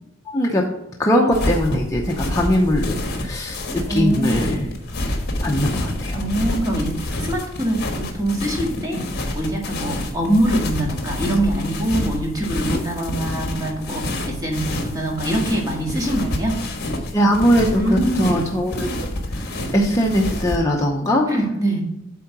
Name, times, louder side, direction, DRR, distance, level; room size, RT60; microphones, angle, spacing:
voice 1, 0.3-0.6 1.0-3.6 3.9-4.7 5.4-6.2 17.1-18.9 19.4-21.3, equal, 15° left, -1 dB, 0.7 m, -20 dB
sound 1, 1.3-20.6, left 1 dB, 50° left, 1.3 m, -28 dB
voice 2, 3.9-4.4 6.2-9.0 9.3-16.6 17.7-18.5 21.3-21.8, right 1 dB, 15° right, -1 dB, 1.8 m, -23 dB
8.5 x 3.8 x 5.9 m, 0.90 s
head